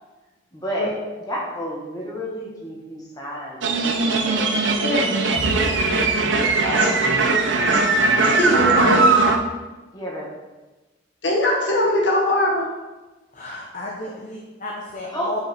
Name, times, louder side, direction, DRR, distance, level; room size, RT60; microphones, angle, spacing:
voice 1, 0.5-0.9 1.3-4.9 5.4-5.6 6.6-7.1 8.3-8.6 9.9-10.3 15.1-15.3, equal, 20° left, -4 dB, 1.8 m, -31 dB
sound 1, 3.6-9.4, right 3 dB, 70° right, 0.8 m, -19 dB
sound 2, 5.3-7.2, equal, 15° right, 2.0 m, -33 dB
voice 2, 8.2-9.1 11.2-12.7, left 1 dB, 65° left, -1 dB, 1.7 m, -21 dB
voice 3, 13.3-15.4, left 2 dB, 40° left, -2 dB, 1.0 m, -33 dB
7.8 x 5.9 x 4.4 m, 1.1 s
head